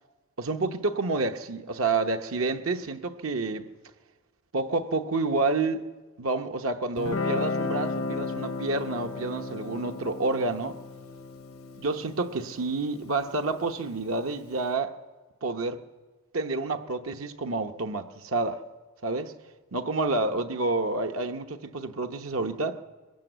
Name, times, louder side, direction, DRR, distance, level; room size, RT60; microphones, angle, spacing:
voice 1, 0.4-3.7 4.5-5.8 6.2-10.8 11.8-14.9 15.4-15.8 16.3-18.6 19.0-19.3 19.7-22.8, right 3 dB, 80° right, 1.0 m, -29 dB
Guitar, 7.0-14.1, left 3 dB, 85° left, 0.9 m, -34 dB
21.5 x 17.5 x 8.0 m
head